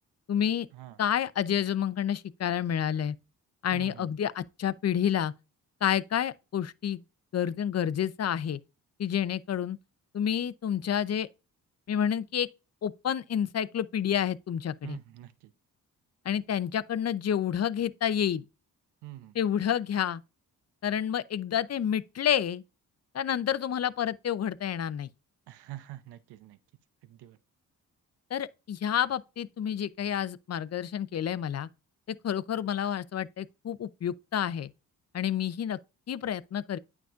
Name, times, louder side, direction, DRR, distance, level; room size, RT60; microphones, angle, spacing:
voice 1, 0.3-0.7 1.0-3.1 3.6-5.3 5.8-7.0 7.3-8.6 9.0-9.8 10.1-11.3 11.9-12.5 12.8-15.0 16.2-18.4 19.3-20.2 20.8-22.6 23.1-25.1 28.3-31.7 32.1-34.7 35.1-35.8 36.1-36.8, left 9 dB, 40° left, 0.6 m, -29 dB
voice 2, 3.7-4.1 14.8-15.5 19.0-19.4 25.5-26.6 27.0-27.4, right 14 dB, 85° right, 0.8 m, -45 dB
9.1 x 5.9 x 2.5 m
supercardioid pair, 50°, 39 cm